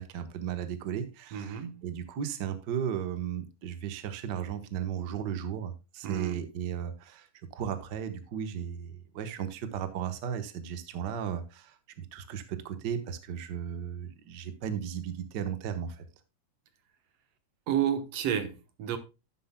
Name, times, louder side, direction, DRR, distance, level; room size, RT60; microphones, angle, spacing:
voice 1, 0.0-7.3 7.5-16.0, right 8 dB, 85° right, 0.9 m, -35 dB
voice 2, 1.3-1.8 6.0-6.4 17.7-19.0, right 9 dB, 60° right, 1.8 m, -31 dB
11.5 x 10.0 x 2.2 m
omnidirectional pair, 3.7 m